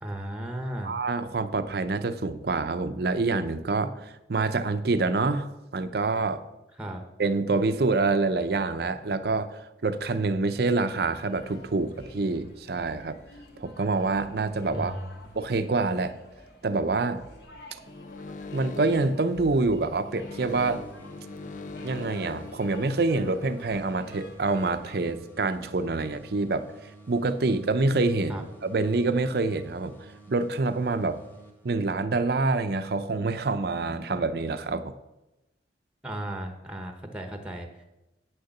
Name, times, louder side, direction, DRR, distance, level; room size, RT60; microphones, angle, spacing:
voice 1, 0.0-0.9 6.7-7.0 14.7-15.2 28.3-28.4 36.0-37.8, right 1 dB, 5° right, 5 dB, 0.9 m, -35 dB
voice 2, 0.8-6.4 7.2-13.2 13.6-15.0 15.4-16.2 16.6-17.2 18.5-20.8 21.8-26.7 27.1-29.9 30.3-31.2 31.6-34.9, right 3 dB, 60° right, 10 dB, 0.6 m, -26 dB
sound 1, 11.3-25.0, left 1 dB, 60° left, 2.0 m, -50 dB
sound 2, 17.9-23.5, left 3 dB, 45° left, 0.5 m, -42 dB
sound 3, 20.4-32.1, right 2 dB, 10° left, 1.5 m, -51 dB
8.8 x 6.6 x 7.1 m, 0.95 s
head